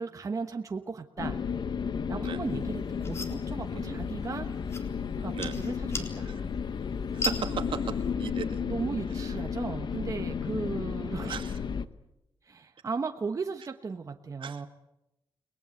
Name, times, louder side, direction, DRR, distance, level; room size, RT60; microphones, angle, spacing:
voice 1, 0.0-1.4 2.1-4.5 5.2-6.3 8.7-11.4 12.4-14.7, right 4 dB, 35° right, 5 dB, 1.2 m, -36 dB
sound 1, 1.2-11.9, left 6 dB, 55° left, 1.1 m, -33 dB
sound 2, 2.5-8.1, left 2 dB, 30° left, 4.0 m, -40 dB
voice 2, 7.1-8.6 11.2-11.5 14.4-14.6, right 7 dB, 70° right, 7 dB, 2.2 m, -36 dB
30.0 x 20.0 x 8.4 m, 0.93 s
wide cardioid pair, 135°, 9 cm